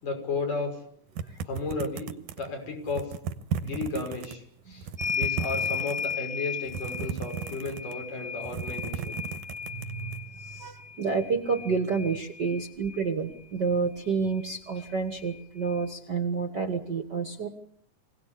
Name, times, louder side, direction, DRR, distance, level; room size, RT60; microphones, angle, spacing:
voice 1, 0.0-0.8 1.4-3.1 3.6-9.2, left 3 dB, 75° left, 2 dB, 7.6 m, -34 dB
sound 1, 1.2-2.5 2.9-4.3 4.7-6.2 6.7-8.0 8.4-10.2, right 7 dB, 75° right, 2.6 m, -35 dB
sound 2, 5.0-13.1 14.4-14.5 14.7-15.8, left 7 dB, 15° left, 0.6 m, -36 dB
voice 2, 9.7-17.5, right 5 dB, 45° right, 7 dB, 1.5 m, -29 dB
25.0 x 18.0 x 8.4 m, 0.62 s
omnidirectional pair, 3.7 m